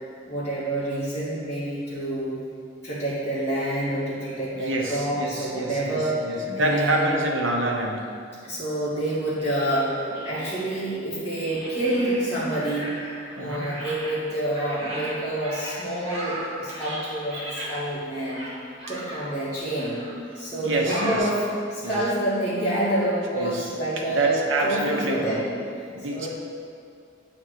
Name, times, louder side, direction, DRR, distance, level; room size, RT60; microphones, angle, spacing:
voice 1, 0.3-2.4 2.8-7.1 8.4-12.9 13.4-18.5 18.9-20.0 20.3-21.4 21.7-24.4 24.6-25.5 25.8-25.9 26.1-26.3, right 1 dB, 15° left, -14 dB, 2.0 m, -27 dB
voice 2, 4.5-6.0 6.2-8.1 10.1-10.2 13.4-13.7 20.6-21.2 21.8-22.0 23.3-23.7 24.1-25.4 25.9-26.3, right 2 dB, 75° right, -1 dB, 1.1 m, -26 dB
sound 1, 9.4-10.9 11.4-13.3 13.6-17.8 18.3-19.3 19.7-20.2 20.9-21.2, right 1 dB, 30° right, 1.8 m, -36 dB
8.9 x 3.5 x 6.5 m, 2.3 s
head